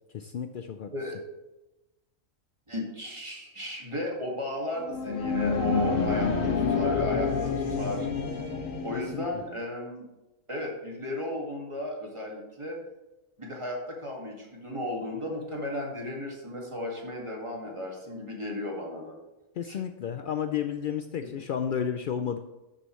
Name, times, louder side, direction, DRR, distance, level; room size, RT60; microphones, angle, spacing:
voice 1, 0.1-0.9 9.1-9.2 19.6-22.4, left 8 dB, 85° left, 7 dB, 0.4 m, -32 dB
voice 2, 2.7-8.1 8.8-10.0 10.5-12.8 13.4-19.2 19.7-19.8, left 1 dB, 20° right, -2 dB, 2.0 m, -35 dB
sound 1, 4.8-9.5, left 5 dB, 70° left, 1.6 m, -28 dB
12.5 x 6.9 x 3.1 m, 1.0 s
omnidirectional pair, 1.4 m